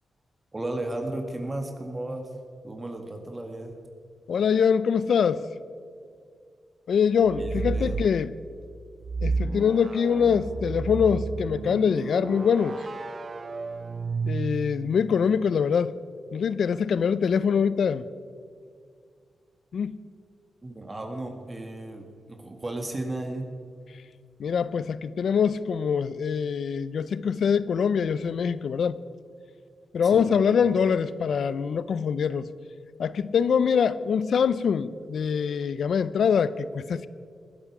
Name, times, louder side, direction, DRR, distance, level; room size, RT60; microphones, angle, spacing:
voice 1, 0.5-2.3 2.6-3.8 7.4-8.0 20.6-23.5 30.0-30.3, right 2 dB, 30° right, 1.9 m, -34 dB
voice 2, 4.3-5.4 6.9-8.3 9.2-12.8 14.2-15.9 16.3-18.0 19.7-20.0 24.4-29.0 29.9-32.5 33.0-37.1, left 6 dB, 75° left, 0.5 m, -24 dB
sound 1, 7.2-8.2 9.0-15.0, right 4 dB, 45° right, 0.5 m, -32 dB
20.0 x 11.0 x 4.9 m
cardioid pair, 65°, 0 cm